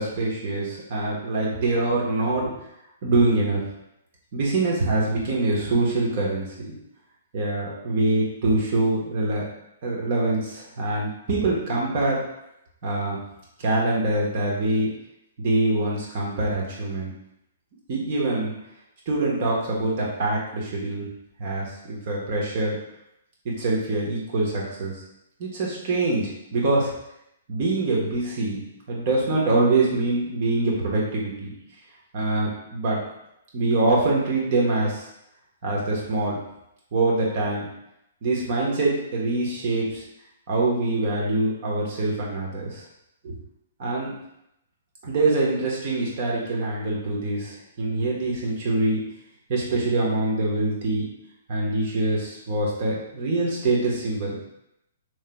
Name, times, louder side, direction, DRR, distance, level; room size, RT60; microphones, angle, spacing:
voice 1, 0.0-2.5 3.0-3.6 4.3-6.7 7.3-9.4 9.8-12.2 12.8-13.2 13.6-14.9 15.4-17.1 17.9-18.5 19.1-21.1 21.4-22.8 23.4-24.9 25.4-26.9 27.5-28.6 28.9-31.5 32.1-33.0 33.5-35.0 35.6-36.4 36.9-37.7 38.2-40.0 40.5-42.8 43.2-43.3 43.8-44.1 45.0-49.0 49.5-51.1 51.5-54.4, right 2 dB, 50° right, -3 dB, 1.1 m, -24 dB
3.1 x 2.9 x 2.2 m, 0.81 s
hypercardioid pair, 130°, 0 cm